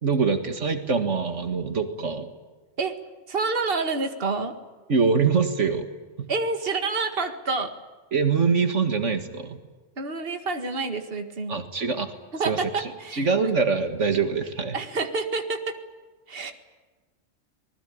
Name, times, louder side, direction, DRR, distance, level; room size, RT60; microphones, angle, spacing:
voice 1, 0.0-2.3 4.9-5.9 6.2-6.3 8.1-9.6 11.5-12.1 12.5-14.8, right 5 dB, 75° right, 7 dB, 2.1 m, -24 dB
voice 2, 3.3-4.5 6.3-7.7 10.0-11.6 12.3-13.3 14.7-15.8 16.3-16.5, right 3 dB, 50° right, 6 dB, 2.1 m, -28 dB
26.0 x 20.5 x 8.6 m, 1.3 s
omnidirectional pair, 1.3 m